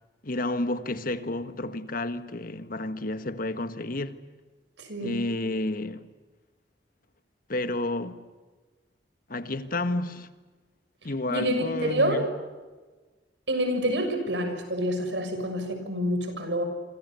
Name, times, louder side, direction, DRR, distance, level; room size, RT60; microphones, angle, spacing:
voice 1, 0.2-4.3 5.0-6.1 7.5-8.2 9.3-10.3 11.0-12.4, left 2 dB, 55° left, 1.6 m, -31 dB
voice 2, 4.8-5.2 11.3-12.3 13.5-16.6, equal, 90° right, 6.5 m, -27 dB
28.5 x 26.0 x 7.0 m
head